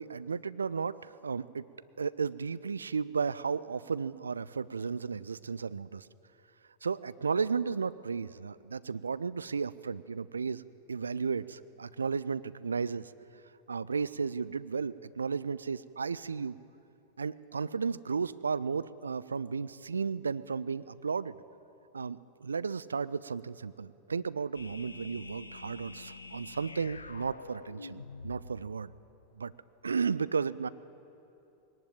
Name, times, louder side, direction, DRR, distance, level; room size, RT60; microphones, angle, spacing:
voice 1, 0.0-1.7 2.0-6.1 6.8-10.6 10.9-13.1 13.7-16.6 17.2-21.4 21.9-28.9 29.4-29.5 29.8-30.7, right 5 dB, 75° right, 17 dB, 0.5 m, -34 dB
sound 1, 24.5-29.2, left 3 dB, 75° left, 0.7 m, -47 dB
20.5 x 18.5 x 9.0 m, 2.8 s
figure-of-eight pair, 90°, 0 cm